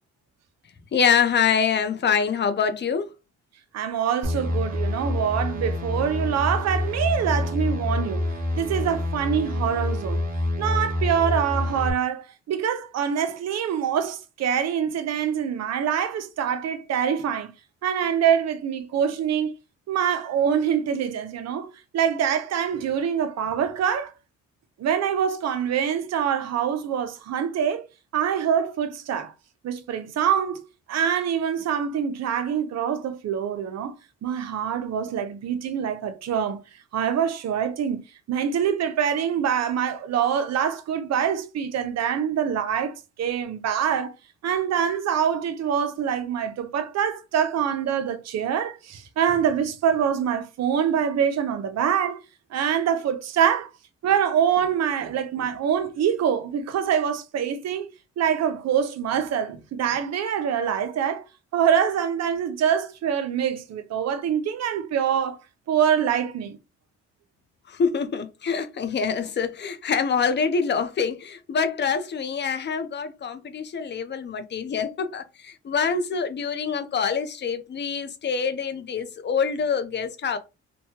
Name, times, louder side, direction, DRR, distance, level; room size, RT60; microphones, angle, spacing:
voice 1, 0.9-3.1 67.7-80.4, left 6 dB, 35° left, 0.5 m, -25 dB
voice 2, 3.7-10.2 10.6-17.5 17.8-19.5 19.9-21.7 21.9-24.1 24.8-27.8 28.1-29.3 29.6-30.6 30.9-33.9 34.2-36.6 36.9-44.1 44.4-52.2 52.5-53.7 54.0-57.9 58.2-61.2 61.5-65.4 65.7-66.6, right 8 dB, 60° right, 0.6 m, -25 dB
sound 1, 4.2-11.9, left 1 dB, 30° right, 1.0 m, -27 dB
3.0 x 2.2 x 2.8 m
cardioid pair, 90°, 30 cm